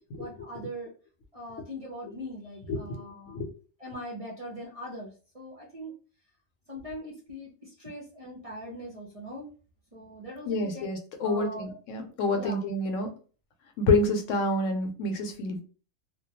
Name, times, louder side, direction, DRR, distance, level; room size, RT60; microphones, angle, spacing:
voice 1, 0.2-0.9 1.3-3.5 3.8-5.9 6.7-9.5 9.9-10.9 11.2-12.6, equal, 40° right, -4 dB, 0.5 m, -41 dB
voice 2, 10.5-13.1 13.8-15.6, left 2 dB, 80° left, 5 dB, 0.9 m, -27 dB
2.3 x 2.2 x 2.7 m, 0.37 s
omnidirectional pair, 1.3 m